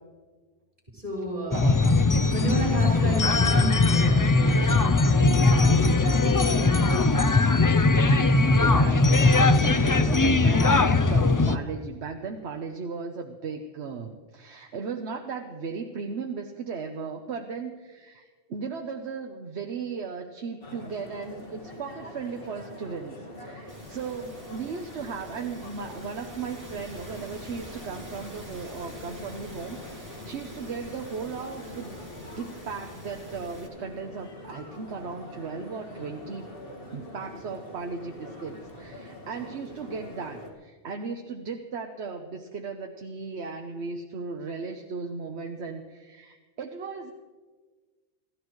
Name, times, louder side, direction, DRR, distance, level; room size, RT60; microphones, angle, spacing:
voice 1, 0.9-1.6 2.3-5.9 6.4-6.8, right 1 dB, 40° right, -4 dB, 4.8 m, -32 dB
sound 1, 1.5-11.6, left 3 dB, 25° left, 0.4 m, -20 dB
voice 2, 1.5-1.9 8.6-32.0 32.3-36.5 36.9-47.1, right 5 dB, 80° right, 4 dB, 1.2 m, -36 dB
sound 2, 20.6-40.5, left 1 dB, 60° left, 2.2 m, -44 dB
sound 3, 23.7-33.7, equal, 15° right, 2.4 m, -46 dB
28.0 x 14.0 x 3.1 m, 1.4 s
omnidirectional pair, 1.1 m